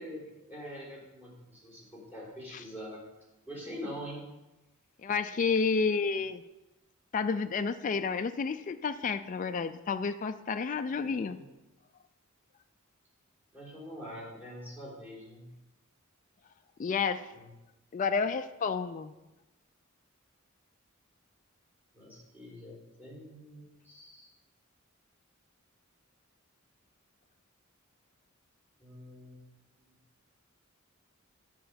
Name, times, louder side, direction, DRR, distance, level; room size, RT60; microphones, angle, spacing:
voice 1, 0.0-3.0 3.5-4.2 10.9-11.4 13.5-15.5 17.3-17.5 21.9-24.3 28.8-29.5, equal, 10° right, -5 dB, 3.6 m, -45 dB
voice 2, 5.0-6.4 7.1-11.4 16.8-17.2 17.9-19.1, left 5 dB, 40° left, 9 dB, 0.4 m, -30 dB
10.0 x 4.4 x 6.9 m, 1.0 s
head